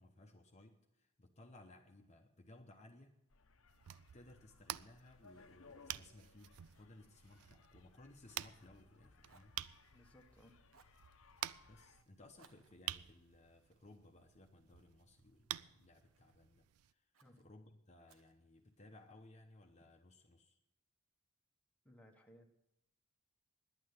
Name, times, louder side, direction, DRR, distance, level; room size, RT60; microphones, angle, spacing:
voice 1, 0.0-3.2 4.1-9.6 11.7-20.6, left 2 dB, 30° left, 4 dB, 0.9 m, -61 dB
sound 1, 3.3-12.0, left 4 dB, 65° left, 0.9 m, -65 dB
sound 2, 3.7-16.9, right 13 dB, 90° right, 0.4 m, -50 dB
Fire, 5.3-9.0 9.2-10.3 10.7-11.1 12.4-14.8 15.3-16.4 17.1-17.5 18.1-19.2, right 5 dB, 65° right, 1.1 m, -73 dB
voice 2, 9.9-10.6 17.2-17.5 21.8-22.5, equal, 5° left, 2 dB, 1.2 m, -62 dB
10.5 x 8.7 x 9.5 m, 0.86 s
head